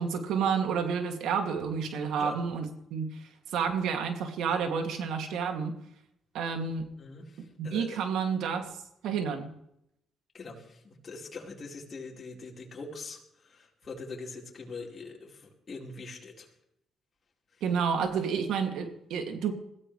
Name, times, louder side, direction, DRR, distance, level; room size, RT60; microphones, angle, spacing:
voice 1, 0.0-3.2 3.5-5.7 6.3-6.9 7.6-8.7 9.0-9.5 17.6-19.5, right 6 dB, 85° right, 4 dB, 2.6 m, -30 dB
voice 2, 7.0-8.0 10.3-16.5, left 3 dB, 40° left, -3 dB, 4.6 m, -43 dB
22.5 x 16.0 x 3.4 m, 0.77 s
cardioid pair, 90°, 0 cm